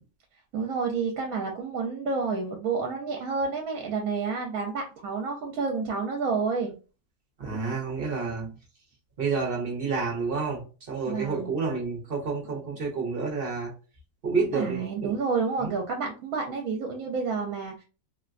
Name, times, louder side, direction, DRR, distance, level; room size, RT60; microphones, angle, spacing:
voice 1, 0.5-6.7 7.4-7.6 11.1-11.5 14.4-17.8, right 4 dB, 75° right, 2 dB, 1.0 m, -29 dB
voice 2, 7.4-8.5 9.2-10.6 10.9-13.7 14.2-15.2 15.6-15.7, right 4 dB, 50° right, 0 dB, 0.8 m, -29 dB
3.8 x 2.1 x 2.4 m, 0.34 s
omnidirectional pair, 1.5 m